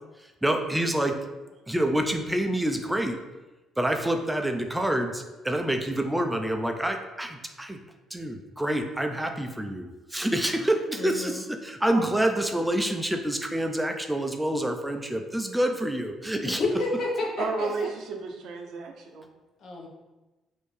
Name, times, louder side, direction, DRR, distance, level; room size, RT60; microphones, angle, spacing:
voice 1, 0.4-1.1 1.7-3.2 3.8-7.8 8.1-16.6, right 1 dB, 5° right, 5 dB, 0.4 m, -27 dB
voice 2, 11.0-11.4 16.4-17.7 19.6-19.9, left 2 dB, 65° left, -2 dB, 1.0 m, -30 dB
voice 3, 17.4-19.2, right 4 dB, 75° right, 3 dB, 0.6 m, -33 dB
4.3 x 2.6 x 3.2 m, 1.1 s
cardioid pair, 85°, 0 cm